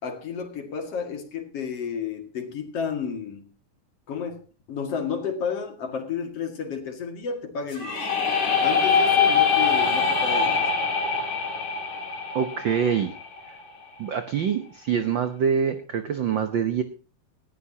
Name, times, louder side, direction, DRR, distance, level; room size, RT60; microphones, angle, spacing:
voice 1, 0.0-3.5 4.1-8.1 8.6-10.6, left 6 dB, 55° left, 5 dB, 3.0 m, -32 dB
sound 1, 7.7-13.6, left 5 dB, 80° left, 5.0 m, -23 dB
voice 2, 12.3-13.1 13.5-13.6 14.0-16.8, right 7 dB, 75° right, 9 dB, 1.1 m, -25 dB
19.0 x 14.5 x 2.9 m, 0.37 s
omnidirectional pair, 3.5 m